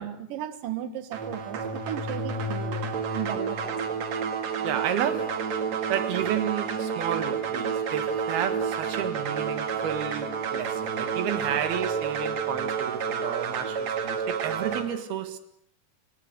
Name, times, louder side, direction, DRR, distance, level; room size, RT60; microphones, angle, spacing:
voice 1, 0.0-4.0, right 11 dB, 65° right, 3.1 m, -36 dB
sound 1, 1.1-14.8, right 6 dB, 50° right, 2.9 m, -30 dB
voice 2, 4.6-5.5 5.9-15.4, right 9 dB, 85° right, 3.7 m, -31 dB
29.5 x 16.0 x 8.0 m
omnidirectional pair, 4.3 m